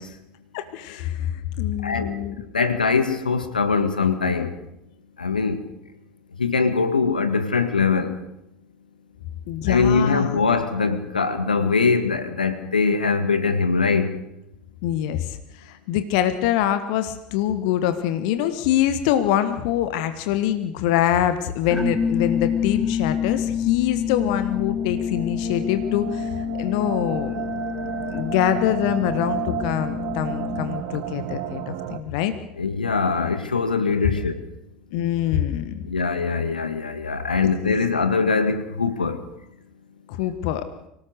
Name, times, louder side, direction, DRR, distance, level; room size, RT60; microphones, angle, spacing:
voice 1, 0.5-2.4 9.5-10.4 14.8-27.4 28.1-32.3 34.9-35.8 40.1-40.6, left 11 dB, 60° left, 10 dB, 1.4 m, -24 dB
voice 2, 2.5-4.5 5.2-5.6 6.4-8.1 9.7-14.1 32.6-34.3 35.9-39.2, left 4 dB, 80° left, 10 dB, 1.7 m, -22 dB
sound 1, 21.7-31.0, left 7 dB, 5° left, 2.0 m, -28 dB
sound 2, 24.4-32.0, right 12 dB, 55° right, 1.8 m, -32 dB
24.5 x 18.0 x 6.6 m, 0.82 s
figure-of-eight pair, 70°, 5 cm